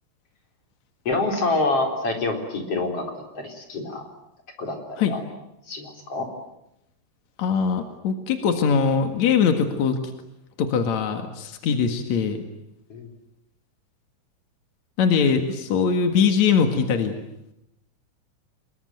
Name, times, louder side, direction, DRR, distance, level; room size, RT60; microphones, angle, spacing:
voice 1, 1.0-4.0 4.6-5.2 5.7-6.3 12.9-13.1, left 2 dB, 30° left, 3 dB, 4.5 m, -27 dB
voice 2, 7.4-10.0 10.6-12.4 15.0-17.2, left 6 dB, 55° left, 6 dB, 2.0 m, -21 dB
27.5 x 21.5 x 9.3 m, 0.85 s
omnidirectional pair, 5.8 m